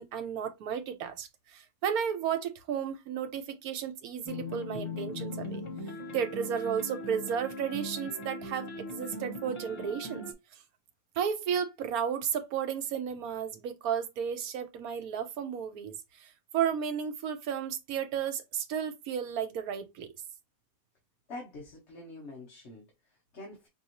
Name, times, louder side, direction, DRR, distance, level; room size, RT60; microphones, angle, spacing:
voice 1, 0.0-5.6 6.1-10.2 11.2-16.3 16.5-20.1, right 8 dB, 90° right, 1.3 m, -33 dB
sound 1, 4.3-10.3, left 1 dB, 25° left, 1.0 m, -39 dB
voice 2, 21.3-23.7, left 2 dB, 50° left, 1.4 m, -46 dB
5.4 x 2.7 x 2.9 m
omnidirectional pair, 1.5 m